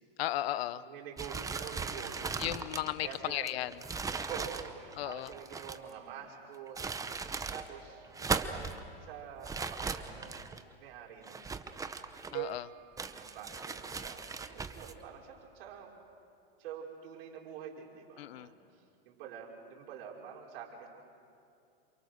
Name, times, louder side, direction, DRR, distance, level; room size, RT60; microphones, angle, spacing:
voice 1, 0.2-0.8 2.4-3.7 5.0-5.3 12.3-12.7 18.2-18.5, left 14 dB, 75° left, 15 dB, 1.1 m, -35 dB
voice 2, 0.8-2.4 3.0-3.6 4.1-6.8 7.5-8.7 9.0-10.5 10.8-12.0 13.1-15.9 16.6-18.5 19.1-20.9, right 8 dB, 70° right, -1 dB, 5.6 m, -47 dB
sound 1, 1.2-5.9 6.5-7.7 8.0-8.8 9.4-10.6 11.2-12.5 13.0-14.9, right 4 dB, 10° right, 0.9 m, -38 dB
sound 2, 12.3-14.4, right 16 dB, 45° right, 0.6 m, -44 dB
28.5 x 28.0 x 6.7 m, 2.5 s
supercardioid pair, 140°, 31 cm